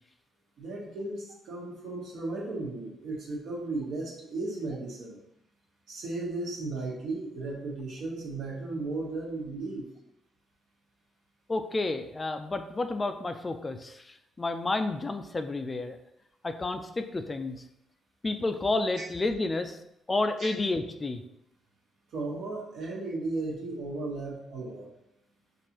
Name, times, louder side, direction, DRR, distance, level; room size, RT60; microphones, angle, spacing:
voice 1, 0.6-5.2 5.9-9.8 20.4-20.5 22.1-24.9, right 2 dB, 75° right, -3 dB, 1.1 m, -35 dB
voice 2, 11.5-16.0 16.4-17.6 18.2-19.8 20.1-21.2, left 2 dB, 25° left, 8 dB, 0.3 m, -30 dB
4.6 x 2.5 x 2.9 m, 0.80 s
cardioid pair, 90°, 0 cm